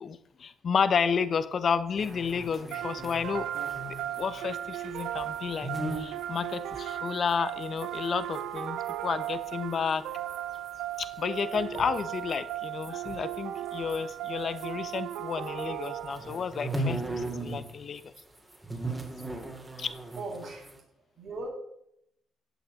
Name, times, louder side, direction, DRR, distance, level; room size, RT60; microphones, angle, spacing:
voice 1, 0.0-3.5 3.9-5.7 6.0-10.1 11.0-18.0 19.8-19.9, left 6 dB, 50° left, 13 dB, 1.1 m, -31 dB
sound 1, 2.0-9.0 9.2-15.2 15.4-17.7 18.0-20.8, right 1 dB, 15° right, 3.4 m, -39 dB
sound 2, 2.7-16.6, right 12 dB, 85° right, 1.1 m, -36 dB
voice 2, 20.2-20.7 21.2-21.5, right 2 dB, 60° right, -1 dB, 7.0 m, -37 dB
16.0 x 6.6 x 9.6 m, 0.79 s
cardioid pair, 90°, 0 cm